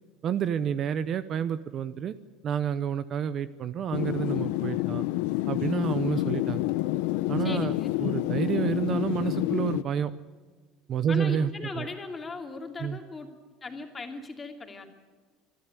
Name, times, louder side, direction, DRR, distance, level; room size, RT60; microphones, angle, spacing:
voice 1, 0.2-2.1 2.4-5.0 5.5-6.6 7.3-7.7 8.0-10.1 10.9-11.5 11.8-11.9 12.8-13.0, right 8 dB, 35° right, 14 dB, 0.7 m, -29 dB
sound 1, 3.9-9.8, left 17 dB, 80° left, 0.7 m, -28 dB
voice 2, 7.4-7.9 11.1-13.3 13.6-14.8, left 3 dB, 20° left, 4 dB, 2.6 m, -38 dB
26.5 x 12.0 x 9.6 m, 1.4 s
cardioid pair, 150°, 0 cm